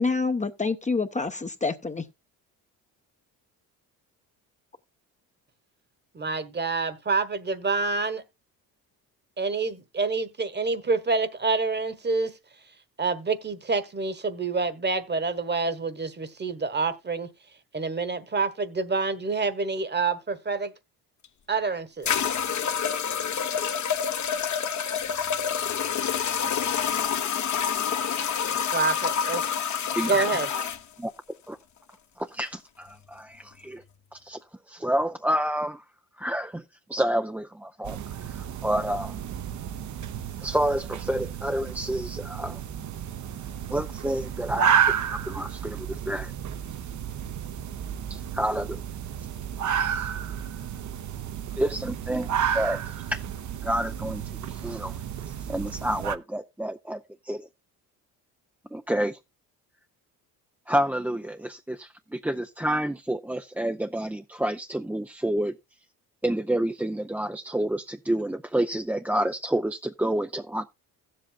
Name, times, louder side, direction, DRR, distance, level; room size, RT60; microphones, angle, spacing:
voice 1, 0.0-2.0, left 4 dB, 20° left, 0.8 m, -27 dB
voice 2, 6.1-8.2 9.4-12.3 13.0-17.3 17.7-20.7 21.5-22.2 28.7-29.4 30.1-30.5, right 4 dB, 25° right, 1.3 m, -27 dB
sound 1, 21.2-21.3 22.1-30.8, left 8 dB, 45° left, 1.0 m, -27 dB
voice 3, 30.0-30.6 31.0-31.1 31.5-31.6 32.2-33.8 34.1-34.4 34.7-35.8 36.2-36.6 36.9-38.0 38.3-39.2 40.4-42.6 43.7-46.3 48.1-48.8 50.0-50.1 51.6-53.2 53.6-55.0 55.3-57.5 58.7-59.2 60.7-65.6 66.2-70.7, right 1 dB, 5° right, 0.5 m, -29 dB
sound 2, 37.8-56.2, right 8 dB, 45° right, 0.8 m, -31 dB
16.0 x 7.7 x 2.3 m
supercardioid pair, 70°, 40 cm